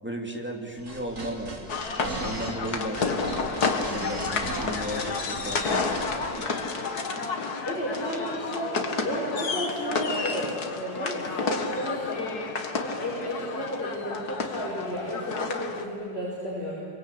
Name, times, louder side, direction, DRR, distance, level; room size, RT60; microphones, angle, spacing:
voice 1, 0.0-3.4 3.8-6.1 6.4-6.8, equal, 5° right, 1 dB, 2.6 m, -36 dB
sound 1, 0.8-6.3, right 2 dB, 65° right, 4.3 m, -37 dB
sound 2, 1.7-15.8, left 4 dB, 75° left, 2.2 m, -30 dB
voice 2, 7.7-8.7 9.0-12.4 12.8-16.7, equal, 40° left, -6 dB, 5.9 m, -32 dB
26.0 x 24.0 x 8.7 m, 2.7 s
omnidirectional pair, 1.7 m